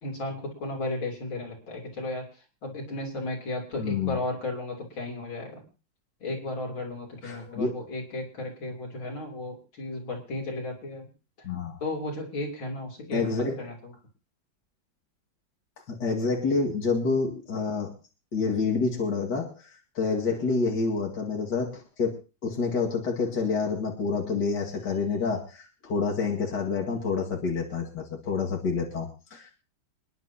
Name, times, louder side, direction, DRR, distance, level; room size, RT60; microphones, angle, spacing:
voice 1, 0.0-5.6 6.2-11.1 11.8-13.9, left 2 dB, 85° left, 0 dB, 4.3 m, -34 dB
voice 2, 3.8-4.2 7.2-7.8 11.4-11.8 13.1-13.6 15.9-17.9 18.3-19.7 19.9-29.5, left 4 dB, 60° left, -1 dB, 2.7 m, -28 dB
27.5 x 10.5 x 2.9 m, 0.33 s
omnidirectional pair, 2.1 m